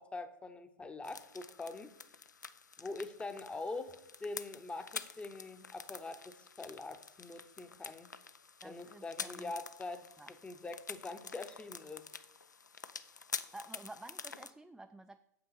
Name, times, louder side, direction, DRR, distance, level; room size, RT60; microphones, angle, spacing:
voice 1, 0.0-1.9 2.8-8.1 8.6-10.0 10.3-12.1, left 3 dB, 10° left, 9 dB, 0.8 m, -44 dB
sound 1, 1.0-14.5, left 5 dB, 85° left, 0.4 m, -48 dB
voice 2, 8.6-9.5 10.2-10.3 13.5-15.2, right 2 dB, 5° right, 7 dB, 0.3 m, -51 dB
7.6 x 5.9 x 5.4 m, 0.84 s
figure-of-eight pair, 90°, 9 cm